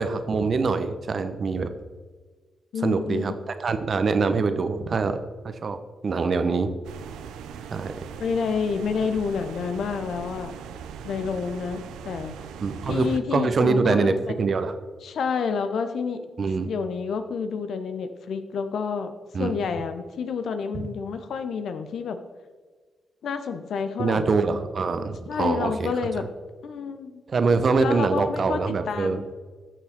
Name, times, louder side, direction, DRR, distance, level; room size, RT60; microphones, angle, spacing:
voice 1, 0.0-1.7 2.8-3.3 3.6-6.7 7.7-7.9 12.6-14.7 16.4-16.7 19.3-19.5 24.0-25.9 27.3-29.2, right 4 dB, 55° right, 9 dB, 1.0 m, -24 dB
voice 2, 2.7-3.4 8.2-10.5 11.0-12.4 12.9-14.5 15.0-16.2 16.6-19.1 19.4-22.2 23.2-24.4 25.3-26.2 26.6-27.2 27.8-29.3, left 5 dB, 70° left, 8 dB, 0.9 m, -29 dB
sound 1, 6.8-13.2, right 7 dB, 80° right, 0.6 m, -40 dB
12.5 x 6.5 x 4.4 m, 1.4 s
hypercardioid pair, 40°, 0 cm